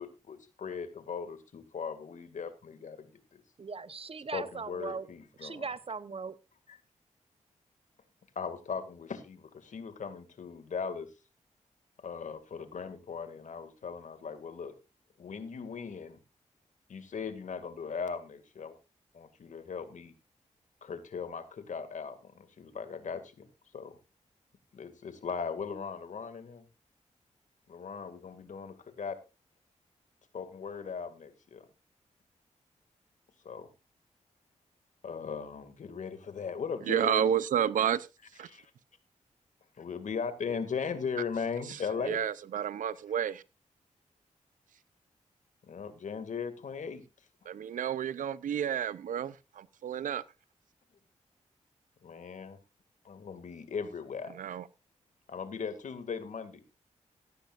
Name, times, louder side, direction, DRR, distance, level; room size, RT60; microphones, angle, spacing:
voice 1, 0.0-3.4 4.3-5.6 6.7-6.8 8.4-11.1 12.0-14.7 15.2-16.2 16.9-18.7 19.1-20.1 20.8-23.5 23.7-23.9 24.7-26.6 27.7-29.2 30.3-31.7 33.4-33.7 35.0-37.3 38.5-38.7 39.8-42.2 45.6-47.0 52.0-52.6 53.0-54.3 55.3-56.6, left 6 dB, 70° left, 2.2 m, -38 dB
voice 2, 3.6-5.1 5.4-6.4, right 5 dB, 45° right, 1.0 m, -39 dB
voice 3, 36.9-38.1 38.4-38.5 41.7-43.4 47.5-50.2 54.3-54.7, right 9 dB, 85° right, 0.6 m, -31 dB
15.5 x 13.5 x 2.5 m
cardioid pair, 50°, 13 cm